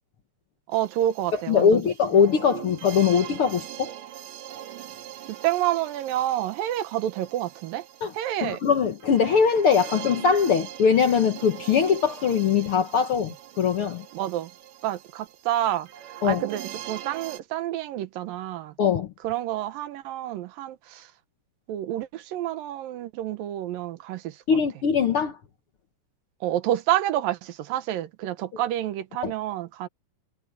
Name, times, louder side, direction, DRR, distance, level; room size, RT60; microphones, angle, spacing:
sound 1, 0.7-17.4, right 12 dB, 65° right, 2.4 m, -42 dB
voice 1, 0.7-1.8 5.3-7.8 8.1-8.6 14.1-14.5 14.8-15.9 16.2-18.7 19.2-21.1 21.7-24.4 26.4-29.9, right 13 dB, 85° right, 2.8 m, -28 dB
voice 2, 1.3-3.9 8.0-8.1 8.4-14.0 16.2-16.4 18.8-19.1 24.5-25.4 29.2-29.3, left 6 dB, 60° left, 1.5 m, -21 dB
omnidirectional pair, 4.0 m